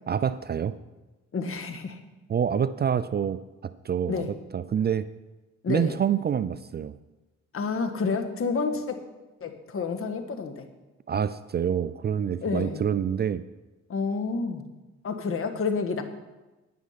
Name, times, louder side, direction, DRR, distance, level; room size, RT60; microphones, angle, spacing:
voice 1, 0.1-0.8 2.3-4.2 4.5-5.1 5.7-7.0 11.1-13.4, right 8 dB, 35° right, 14 dB, 0.4 m, -27 dB
voice 2, 1.3-2.0 4.1-4.3 5.6-6.0 7.5-9.0 9.4-10.6 12.4-12.8 13.9-14.6 15.0-16.0, left 4 dB, 45° left, 7 dB, 1.4 m, -29 dB
9.7 x 9.4 x 5.8 m, 1.1 s
cardioid pair, 90°, 30 cm